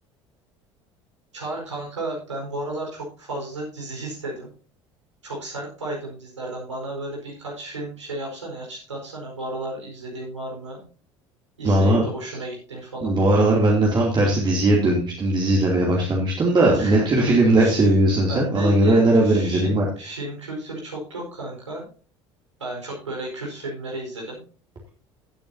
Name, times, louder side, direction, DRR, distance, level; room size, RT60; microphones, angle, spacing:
voice 1, 1.3-4.5 5.2-10.8 11.6-13.1 16.7-17.9 18.3-21.9 22.6-24.4, right 2 dB, 80° right, -1 dB, 4.7 m, -33 dB
voice 2, 11.6-12.0 13.0-19.8, right 1 dB, 30° right, -2 dB, 2.8 m, -18 dB
17.0 x 8.6 x 2.8 m, 0.38 s
figure-of-eight pair, 60°, 15 cm